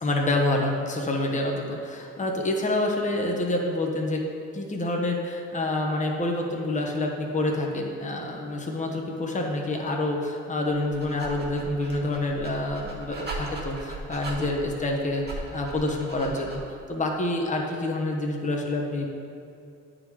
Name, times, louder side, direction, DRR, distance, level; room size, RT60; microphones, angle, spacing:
voice 1, 0.0-4.2 4.5-19.1, left 2 dB, 25° left, 0 dB, 1.0 m, -27 dB
Dog, 10.7-16.8, right 2 dB, 35° right, 1.3 m, -39 dB
9.4 x 3.8 x 4.7 m, 2.5 s
cardioid pair, 90°, 30 cm